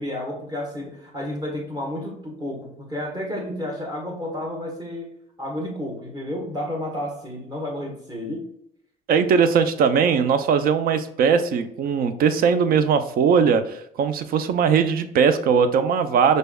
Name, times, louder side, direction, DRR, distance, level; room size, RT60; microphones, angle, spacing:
voice 1, 0.0-5.1 5.4-8.5, left 1 dB, 25° right, -1 dB, 1.4 m, -31 dB
voice 2, 9.1-16.4, right 6 dB, 60° right, 11 dB, 0.5 m, -20 dB
5.2 x 3.3 x 2.3 m, 0.74 s
cardioid pair, 110°, 17 cm